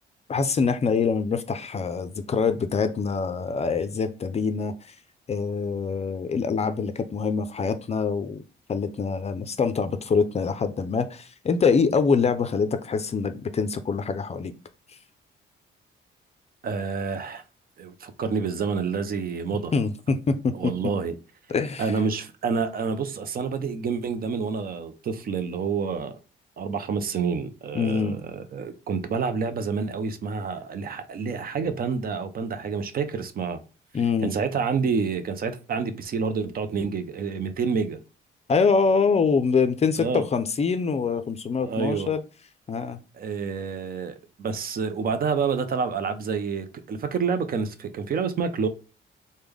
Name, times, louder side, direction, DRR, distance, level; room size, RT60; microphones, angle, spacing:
voice 1, 0.3-4.9 5.3-8.4 8.7-14.5 19.7-20.7 21.5-21.9 27.7-28.2 33.9-34.3 38.5-42.2 42.7-43.0, left 5 dB, 35° left, 0.4 m, -24 dB
voice 2, 16.6-17.4 17.8-19.7 20.5-21.1 21.8-26.2 26.6-33.6 34.2-38.0 40.0-40.3 41.6-42.1 43.2-48.7, right 5 dB, 50° right, 0.5 m, -28 dB
3.3 x 2.1 x 3.5 m
cardioid pair, 90°, 20 cm